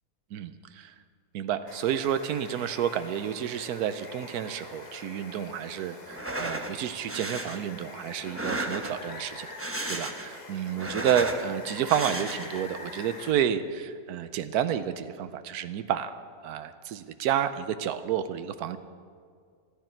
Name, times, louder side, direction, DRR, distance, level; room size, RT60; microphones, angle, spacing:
voice 1, 0.3-0.9 1.3-18.8, right 9 dB, 85° right, 11 dB, 1.2 m, -30 dB
Water, 1.7-13.3, left 3 dB, 30° left, 1.2 m, -44 dB
sound 1, 6.1-6.7 7.1-7.6 8.2-9.1 9.5-10.4 10.7-11.4 11.9-12.6, right 2 dB, 10° right, 0.8 m, -34 dB
25.5 x 10.5 x 4.5 m, 2.1 s
omnidirectional pair, 1.6 m